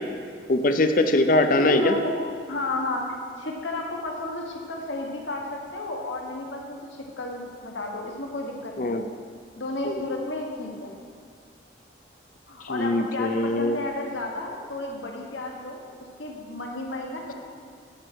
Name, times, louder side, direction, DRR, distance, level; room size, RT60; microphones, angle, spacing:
voice 1, 0.5-1.9 8.8-9.0 9.9-10.0 12.7-13.8, left 2 dB, 45° left, 8 dB, 0.6 m, -22 dB
voice 2, 1.6-2.1 2.5-3.0 3.4-6.8 7.2-9.1 9.6-10.9 12.5-15.8 16.2-17.3, left 2 dB, 80° left, 0 dB, 1.4 m, -32 dB
9.3 x 5.9 x 6.2 m, 2.1 s
head